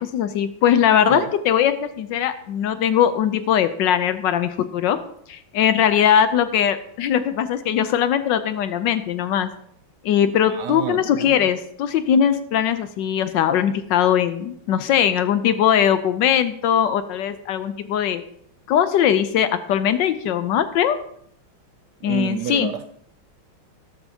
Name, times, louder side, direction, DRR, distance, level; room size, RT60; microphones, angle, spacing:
voice 1, 0.0-5.0 5.3-9.5 10.0-18.2 18.7-21.0 22.0-22.7, left 9 dB, 70° left, 11 dB, 1.2 m, -20 dB
voice 2, 10.5-11.5 22.0-22.9, right 10 dB, 75° right, 10 dB, 1.0 m, -30 dB
13.5 x 11.5 x 2.8 m, 0.68 s
omnidirectional pair, 2.2 m